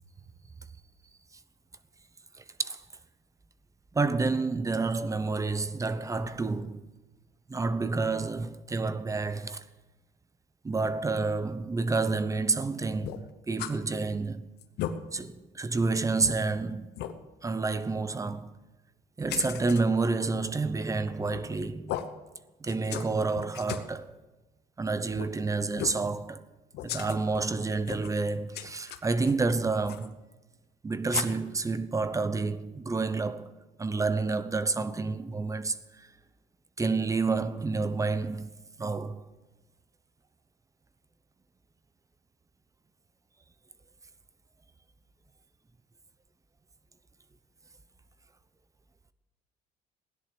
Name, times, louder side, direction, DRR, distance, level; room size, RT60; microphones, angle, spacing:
voice 1, 2.4-2.8 3.9-6.9 7.5-9.6 10.6-14.5 15.1-16.9 17.4-18.5 19.2-21.9 22.6-24.2 24.8-26.5 26.8-30.1 30.8-33.5 33.8-36.1 36.8-39.2, right 3 dB, 20° right, 0.9 m, -29 dB
sound 1, 13.0-13.8 14.1-14.2 14.6-15.0 15.5-15.6 16.2-16.4 17.0-17.1 19.3-19.8 21.2-21.5 21.9-22.1 22.7-23.1 23.4-23.9 25.1-25.3 25.7-26.0 26.7-27.5 27.8-28.2 28.5-29.4 29.8-30.1 31.1-31.2, left 11 dB, 75° left, 1.1 m, -36 dB
16.5 x 10.5 x 6.9 m
cardioid pair, 110°, 17 cm